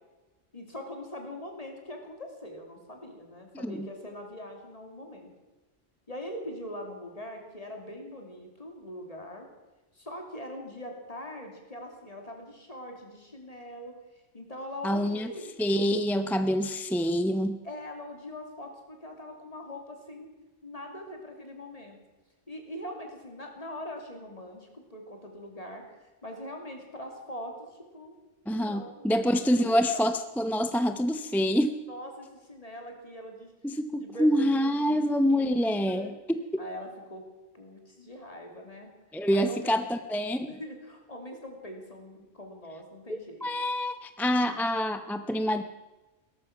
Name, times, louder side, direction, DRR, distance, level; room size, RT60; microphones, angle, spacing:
voice 1, 0.5-5.3 6.1-9.5 9.9-13.9 14.3-15.5 17.6-20.3 20.6-22.0 22.5-27.7 27.9-28.2 28.5-30.1 31.6-33.5 33.9-36.2 36.6-37.3 37.5-38.9 39.3-39.9 40.4-43.5, left 1 dB, 30° left, 2 dB, 3.0 m, -42 dB
voice 2, 14.8-15.3 15.6-17.6 28.5-31.7 33.6-36.6 39.1-40.5 43.1-45.6, equal, ahead, 9 dB, 0.5 m, -26 dB
17.5 x 13.5 x 5.9 m, 1.2 s
omnidirectional pair, 1.2 m